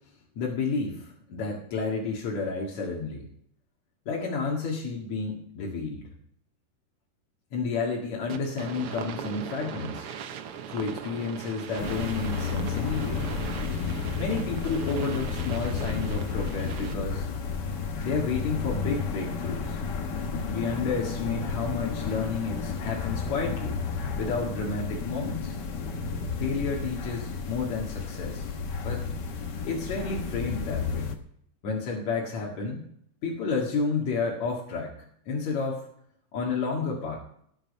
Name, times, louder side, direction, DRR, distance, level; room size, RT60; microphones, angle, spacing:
voice 1, 0.4-3.3 4.1-6.1 7.5-10.1 10.7-13.4 14.2-17.3 18.0-19.8 20.5-23.8 24.2-25.6 26.4-28.5 28.8-29.0 29.6-31.1 31.6-32.8 33.2-34.9 35.3-35.9 36.3-37.2, left 4 dB, 55° left, -3 dB, 3.1 m, -31 dB
sound 1, 8.3-17.2, right 8 dB, 85° right, 1.2 m, -39 dB
sound 2, 11.8-31.1, left 5 dB, 85° left, 0.9 m, -32 dB
19.0 x 7.2 x 5.4 m, 0.67 s
omnidirectional pair, 3.9 m